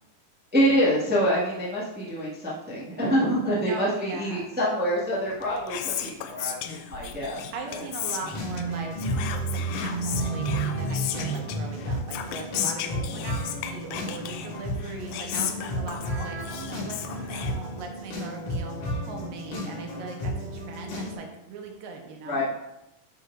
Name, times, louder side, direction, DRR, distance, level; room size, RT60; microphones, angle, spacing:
voice 1, 0.5-7.8 22.2-22.4, equal, 5° right, -7 dB, 0.7 m, -26 dB
voice 2, 3.6-4.5 7.5-22.4, right 4 dB, 80° right, 2 dB, 2.7 m, -40 dB
Whispering, 5.2-18.1, left 9 dB, 85° left, 2.4 m, -35 dB
sound 1, 8.3-21.1, right 1 dB, 65° left, 3.2 m, -32 dB
10.5 x 7.0 x 2.6 m, 0.92 s
omnidirectional pair, 4.1 m